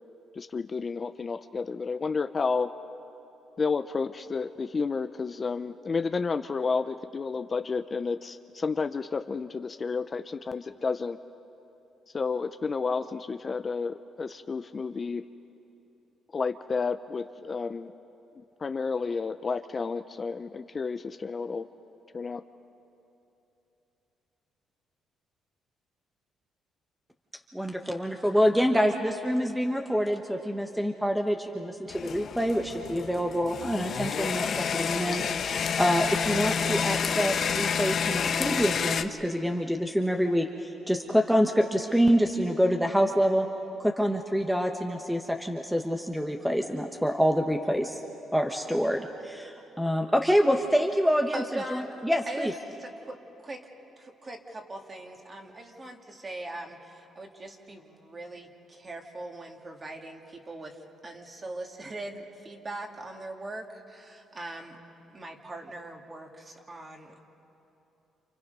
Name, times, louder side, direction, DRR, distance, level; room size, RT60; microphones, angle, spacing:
voice 1, 0.4-2.7 3.6-11.2 12.1-15.2 16.3-17.9 18.4-21.7 22.1-22.4, left 4 dB, 35° left, 10 dB, 0.6 m, -31 dB
voice 2, 27.5-43.5 43.8-48.0 48.3-51.4 51.7-52.5, equal, ahead, 3 dB, 1.1 m, -26 dB
sound 1, 31.9-39.0, left 7 dB, 55° left, 1.0 m, -29 dB
voice 3, 51.3-52.0 52.3-52.5 52.8-53.2 53.4-53.6 54.0-64.8 65.1-67.2, right 2 dB, 30° right, 2 dB, 2.6 m, -41 dB
29.0 x 28.5 x 5.5 m, 3.0 s
cardioid pair, 105°, 0 cm